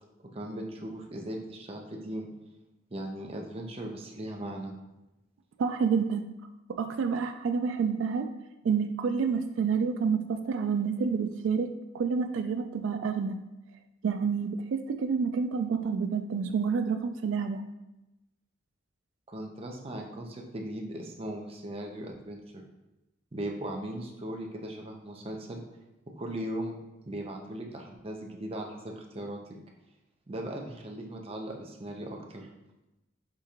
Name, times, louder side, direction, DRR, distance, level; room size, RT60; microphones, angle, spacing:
voice 1, 0.3-2.3 2.9-4.7 19.3-22.6 23.3-25.6 26.2-26.8 27.0-29.4 30.3-32.5, right 1 dB, 30° right, 1 dB, 0.6 m, -38 dB
voice 2, 5.6-6.2 6.7-8.3 8.6-13.4 14.0-17.6, right 5 dB, 80° right, 8 dB, 0.3 m, -28 dB
5.0 x 3.6 x 2.8 m, 0.97 s
head